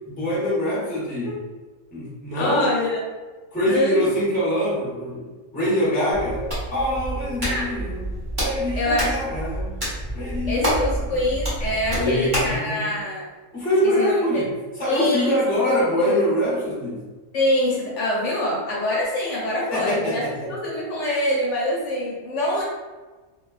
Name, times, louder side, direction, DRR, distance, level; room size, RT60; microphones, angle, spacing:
voice 1, 0.1-1.4 1.9-2.7 3.5-5.3 5.5-6.4 6.7-9.8 10.1-11.3 11.9-12.9 13.5-17.0 19.7-20.5, equal, 10° left, -8 dB, 0.6 m, -24 dB
voice 2, 2.4-2.9 3.7-4.0 7.4-7.7 8.8-9.1 10.5-13.3 14.0-14.2 14.8-15.3 15.6-16.2 17.3-22.6, left 1 dB, 65° left, -5 dB, 0.9 m, -24 dB
Hands, 6.1-12.6, right 1 dB, 20° right, 0.8 m, -28 dB
2.6 x 2.2 x 2.3 m, 1.3 s
omnidirectional pair, 1.5 m